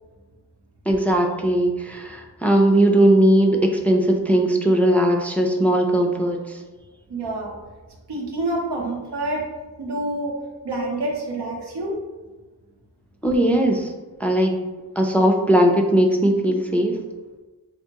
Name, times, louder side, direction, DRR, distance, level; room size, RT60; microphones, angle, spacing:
voice 1, 0.9-6.6 13.2-13.9 14.2-14.5 15.0-17.0, right 1 dB, 5° left, 2 dB, 0.3 m, -18 dB
voice 2, 7.1-7.6 8.1-9.5 9.8-10.4 10.6-12.0, right 2 dB, 90° right, -1 dB, 0.8 m, -27 dB
3.5 x 2.7 x 2.8 m, 1.3 s
wide cardioid pair, 50°, 39 cm